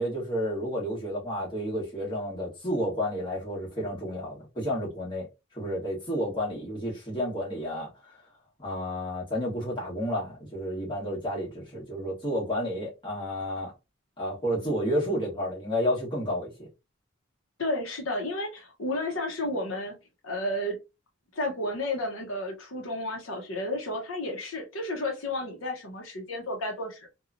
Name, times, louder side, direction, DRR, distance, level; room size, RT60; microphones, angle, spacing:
voice 1, 0.0-8.2 8.6-13.7 14.2-16.7, equal, 25° left, 1.3 m, -31 dB
voice 2, 17.6-19.9 20.2-20.8 21.3-27.1, left 1 dB, 80° left, 0.8 m, -32 dB
2.9 x 2.3 x 2.5 m
head